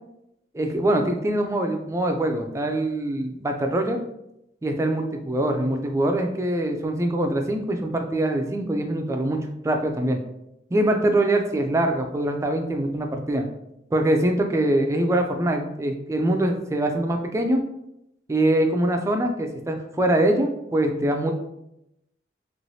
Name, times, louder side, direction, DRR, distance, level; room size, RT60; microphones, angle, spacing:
voice 1, 0.5-4.0 4.6-10.2 10.7-13.5 13.9-17.6 18.3-21.3, right 1 dB, 15° right, 4 dB, 0.3 m, -23 dB
3.2 x 3.0 x 2.7 m, 0.84 s
head